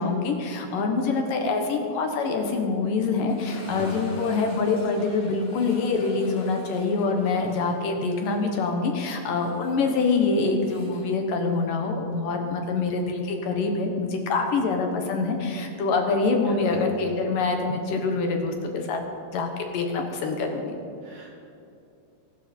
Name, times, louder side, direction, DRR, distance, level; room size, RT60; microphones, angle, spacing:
voice 1, 0.0-19.1 19.3-20.8, left 4 dB, 65° left, 3 dB, 2.6 m, -25 dB
sound 1, 3.3-12.2 12.4-12.5 13.2-13.3 15.9-16.0, equal, 45° left, 5.4 m, -43 dB
voice 2, 3.6-4.0 16.4-16.9 21.0-21.3, equal, 75° right, -5 dB, 6.4 m, -38 dB
22.5 x 12.5 x 4.4 m, 2.6 s
omnidirectional pair, 4.5 m